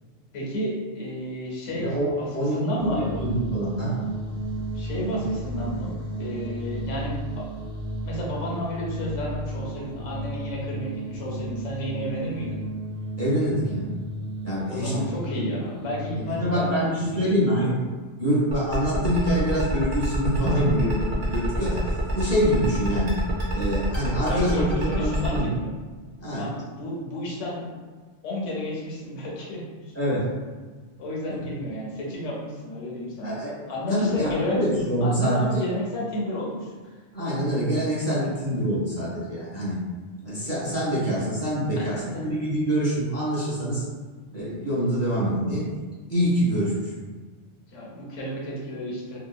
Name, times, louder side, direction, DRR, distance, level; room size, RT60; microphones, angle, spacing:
voice 1, 0.3-2.3 2.5-3.2 4.7-7.4 8.0-12.6 14.7-17.7 24.2-25.7 26.3-27.7 28.2-29.9 31.0-33.4 33.7-34.6 35.0-36.7 41.7-42.2 47.7-49.2, left 1 dB, 85° left, -3 dB, 1.1 m, -31 dB
voice 2, 1.7-2.6 2.8-4.0 5.1-5.2 13.2-13.9 14.4-15.1 15.5-15.6 16.2-17.7 18.2-23.2 23.5-25.5 26.2-26.5 29.9-30.3 31.3-31.4 33.1-33.5 33.9-35.6 37.1-39.8 40.2-43.8 44.3-45.6 46.1-46.9, equal, 15° left, -9 dB, 0.7 m, -25 dB
sound 1, 2.8-17.3, right 1 dB, 55° left, 0.5 m, -34 dB
sound 2, 18.5-25.4, right 1 dB, 45° right, 0.6 m, -28 dB
2.8 x 2.2 x 2.3 m, 1.4 s
omnidirectional pair, 1.2 m